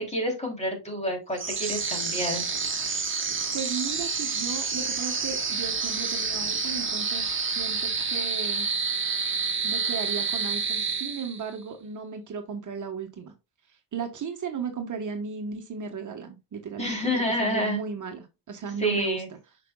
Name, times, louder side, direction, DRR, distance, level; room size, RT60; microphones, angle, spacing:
voice 1, 0.0-2.4 16.8-17.8 18.8-19.3, equal, 15° left, 1 dB, 3.1 m, -28 dB
sound 1, 1.3-11.6, right 5 dB, 30° right, 1.6 m, -29 dB
voice 2, 3.5-8.7 9.6-13.3 13.7-17.0 17.4-19.2, right 5 dB, 50° right, 4 dB, 1.2 m, -35 dB
7.6 x 5.9 x 2.3 m, 0.26 s
cardioid pair, 125°, 39 cm